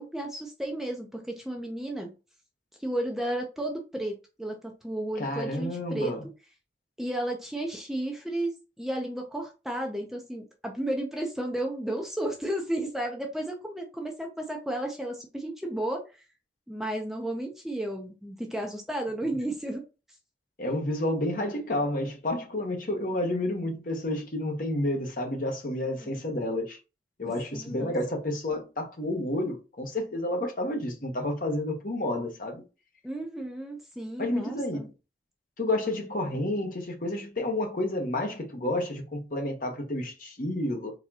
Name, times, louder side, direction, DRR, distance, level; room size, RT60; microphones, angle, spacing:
voice 1, 0.0-2.1 2.8-6.1 7.0-16.0 16.7-19.8 25.7-26.2 27.2-27.9 33.0-34.9, right 1 dB, ahead, 0.6 m, -33 dB
voice 2, 5.2-6.2 20.6-26.8 27.2-32.6 34.2-34.9 35.6-40.9, left 1 dB, 50° left, 1.1 m, -30 dB
4.1 x 3.6 x 2.8 m
head